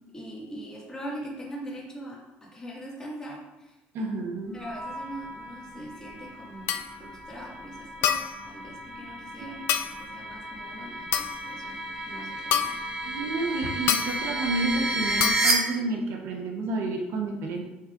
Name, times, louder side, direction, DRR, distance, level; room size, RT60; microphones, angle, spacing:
voice 1, 0.1-3.8 4.5-12.8, right 1 dB, 15° left, -5 dB, 1.9 m, -42 dB
voice 2, 3.9-4.6 9.4-9.7 13.0-17.6, right 3 dB, 60° right, 2 dB, 0.9 m, -30 dB
sound 1, 4.6-15.5, right 1 dB, 20° right, 1.1 m, -33 dB
sound 2, 6.7-7.0 8.0-8.4 9.7-10.0 11.1-11.5 12.5-12.9 13.9-14.2 15.2-15.5, left 9 dB, 65° left, 0.5 m, -27 dB
7.1 x 5.5 x 2.5 m, 0.99 s
cardioid pair, 160°, 4 cm